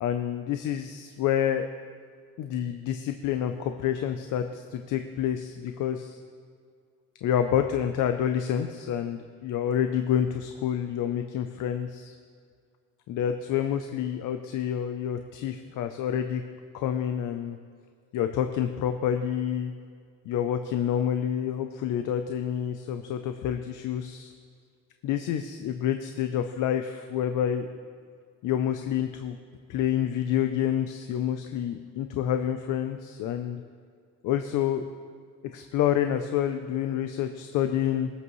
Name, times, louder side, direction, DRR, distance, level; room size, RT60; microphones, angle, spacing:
voice 1, 0.0-1.7 2.4-6.2 7.2-12.1 13.1-16.4 16.7-17.6 18.1-19.7 20.3-24.3 25.0-27.7 28.4-29.3 29.7-33.6 34.2-34.9 35.5-38.1, left 9 dB, 90° left, 7 dB, 0.6 m, -28 dB
21.5 x 8.2 x 3.2 m, 2.1 s
cardioid pair, 90°, 30 cm